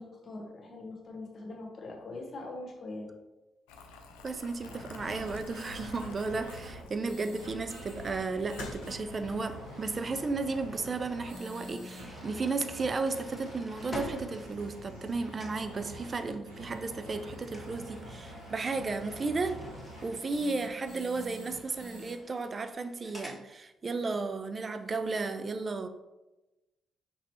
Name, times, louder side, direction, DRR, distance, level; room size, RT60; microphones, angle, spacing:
voice 1, 0.0-3.1, left 2 dB, 40° left, 1 dB, 1.5 m, -42 dB
Boiling, 3.7-9.4, left 3 dB, 70° left, 0.6 m, -50 dB
voice 2, 4.2-19.6 20.0-25.9, right 3 dB, 35° right, 9 dB, 0.6 m, -34 dB
sound 1, 4.6-22.1, equal, 90° right, 1.4 m, -46 dB
sound 2, 8.1-15.1 15.4-15.7 17.5-23.4, left 1 dB, 5° right, 1.7 m, -49 dB
5.8 x 5.7 x 3.0 m, 1.0 s
figure-of-eight pair, 40°, 0 cm